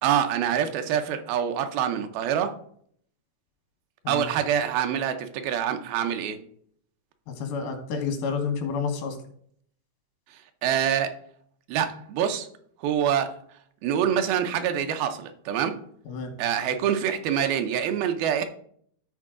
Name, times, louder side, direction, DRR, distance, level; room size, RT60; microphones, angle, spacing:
voice 1, 0.0-2.6 4.1-6.4 10.6-11.2 11.7-12.5 12.8-13.3 13.8-15.8 16.4-18.5, right 9 dB, 85° right, 7 dB, 2.6 m, -25 dB
voice 2, 7.3-9.2 16.1-16.3, left 5 dB, 90° left, 6 dB, 3.2 m, -29 dB
13.0 x 4.6 x 3.7 m, 0.62 s
omnidirectional pair, 4.2 m